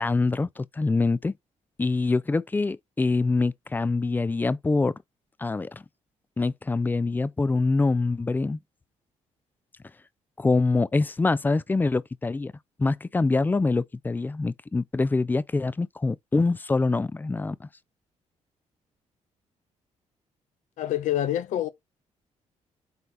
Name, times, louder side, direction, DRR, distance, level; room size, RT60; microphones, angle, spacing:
voice 1, 0.0-1.3 1.8-4.9 5.4-5.8 6.4-8.6 10.4-12.5 12.8-17.6, left 3 dB, 15° left, 0.4 m, -25 dB
voice 2, 20.8-21.7, left 12 dB, 85° left, 0.9 m, -26 dB
7.9 x 4.2 x 3.5 m
cardioid pair, 120°, 12 cm